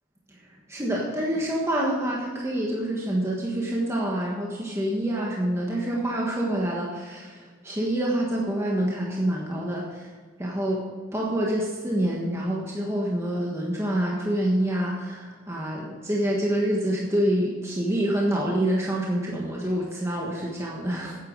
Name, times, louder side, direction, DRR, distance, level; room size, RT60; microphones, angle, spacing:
voice 1, 0.7-10.1 10.4-10.8 11.1-21.2, right 1 dB, 15° right, -3 dB, 1.5 m, -27 dB
9.3 x 8.4 x 6.6 m, 1.5 s
head